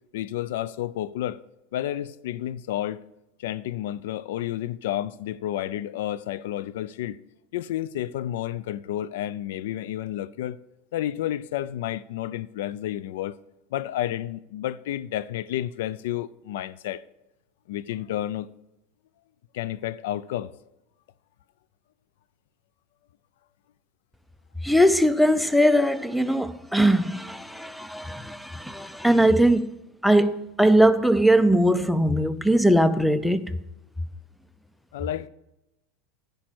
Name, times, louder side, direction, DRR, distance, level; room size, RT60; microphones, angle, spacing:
voice 1, 0.1-1.4 1.7-3.0 3.4-7.2 7.5-10.6 10.9-13.3 13.7-17.0 17.7-18.5 19.5-20.5 34.9-35.3, left 12 dB, 75° left, 0.3 m, -31 dB
voice 2, 24.6-29.7 30.0-33.4, equal, ahead, 0.5 m, -20 dB
10.0 x 5.3 x 6.1 m
supercardioid pair, 115°, 0 cm